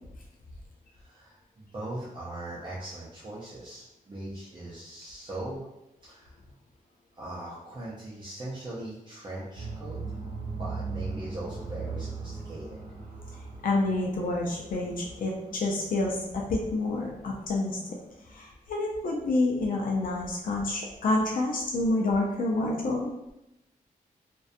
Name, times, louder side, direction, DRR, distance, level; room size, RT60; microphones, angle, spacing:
voice 1, 1.0-5.7 6.0-6.3 7.2-10.2 10.6-12.8, right 1 dB, 30° right, -8 dB, 0.5 m, -40 dB
sound 1, 9.5-18.4, right 4 dB, 85° right, 0.7 m, -40 dB
voice 2, 13.6-17.8 18.3-23.1, left 2 dB, 70° left, -1 dB, 0.4 m, -28 dB
2.5 x 2.2 x 2.5 m, 0.87 s
wide cardioid pair, 125°, 15 cm